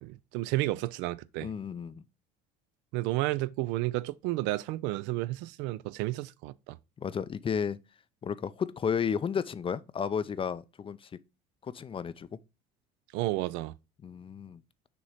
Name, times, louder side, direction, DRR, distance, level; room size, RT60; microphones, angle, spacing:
voice 1, 0.0-1.5 2.9-6.8 13.1-13.7, right 18 dB, 70° right, 0.4 m, -32 dB
voice 2, 1.4-2.0 7.0-7.8 8.2-11.1 11.6-12.3 14.0-14.6, left 7 dB, 25° left, 0.4 m, -33 dB
6.8 x 3.0 x 4.9 m
hypercardioid pair, 80°, 20 cm